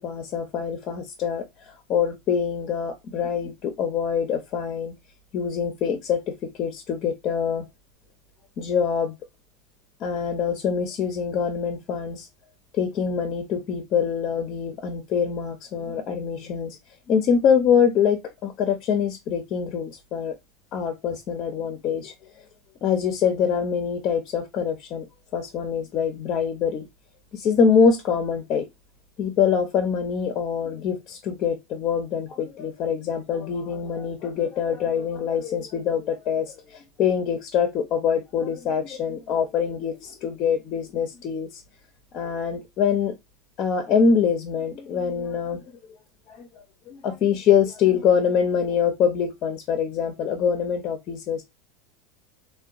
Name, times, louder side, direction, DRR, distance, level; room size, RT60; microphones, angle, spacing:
voice 1, 0.0-4.9 5.3-7.6 8.6-9.1 10.0-12.3 12.7-16.8 17.1-20.3 20.7-22.1 22.8-25.1 25.3-26.9 27.3-28.7 29.2-41.6 42.1-43.1 43.6-45.6 46.3-46.5 46.9-51.4, left 7 dB, 50° left, 0.5 m, -24 dB
3.6 x 2.2 x 2.4 m
hypercardioid pair, 85°, 0 cm